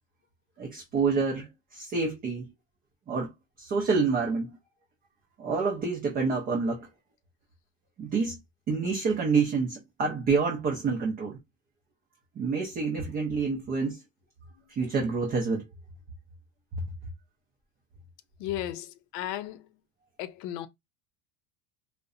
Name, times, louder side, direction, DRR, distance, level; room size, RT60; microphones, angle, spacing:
voice 1, 0.6-2.5 3.1-3.3 3.6-4.5 5.4-6.9 8.0-8.4 8.7-11.4 12.4-14.0 14.7-15.6, right 4 dB, 25° right, 0.5 m, -28 dB
voice 2, 18.4-19.7 20.2-20.7, left 13 dB, 65° left, 0.5 m, -35 dB
2.6 x 2.1 x 2.4 m
supercardioid pair, 140°, 38 cm